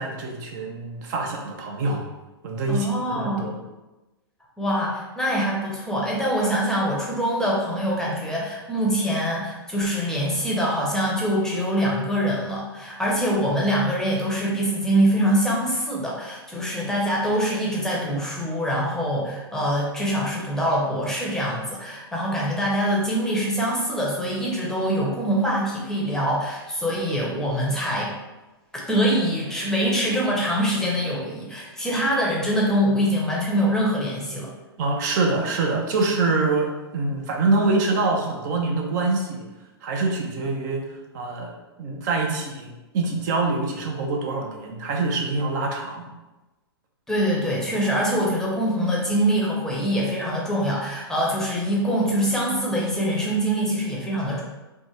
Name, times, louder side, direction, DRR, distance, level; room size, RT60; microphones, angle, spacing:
voice 1, 0.0-2.0 2.4-3.6 34.8-39.5 39.8-40.8 41.1-46.1, right 3 dB, 45° right, 1 dB, 0.5 m, -25 dB
voice 2, 2.7-3.5 4.6-28.1 28.9-34.5 47.1-54.4, equal, 5° left, -4 dB, 0.7 m, -24 dB
3.4 x 2.1 x 3.1 m, 1.1 s
hypercardioid pair, 115°, 13 cm